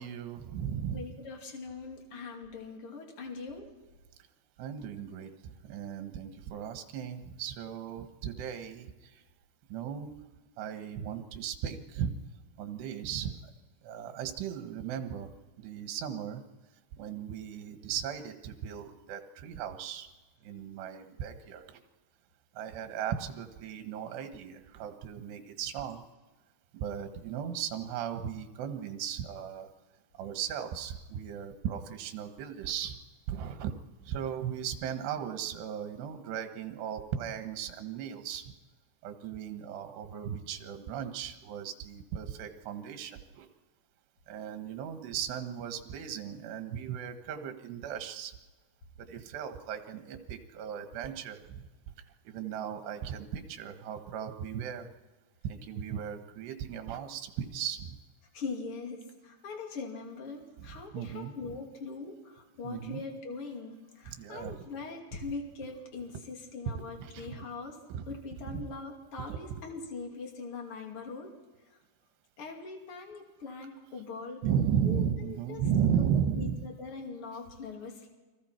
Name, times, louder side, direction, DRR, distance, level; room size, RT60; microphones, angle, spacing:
voice 1, 0.0-1.1 4.6-9.2 9.7-10.1 10.6-12.1 12.6-13.3 13.8-15.3 15.6-16.4 17.0-20.1 20.4-21.8 22.6-26.0 26.7-29.7 30.2-33.0 33.3-33.7 34.1-38.5 39.0-43.5 44.3-48.3 49.0-51.6 52.3-54.9 55.4-58.0 60.6-61.3 62.6-63.0 64.1-64.7 66.7-67.4 67.9-68.1 68.4-68.7 74.4-76.6, right 8 dB, 75° right, 7 dB, 3.4 m, -36 dB
voice 2, 0.9-3.7 58.3-67.8 68.1-71.3 71.7-71.8 72.4-74.4 74.8-75.6 75.9-76.0 76.4-78.1, left 4 dB, 35° left, 2 dB, 3.0 m, -41 dB
29.5 x 22.5 x 4.5 m, 1.2 s
omnidirectional pair, 5.0 m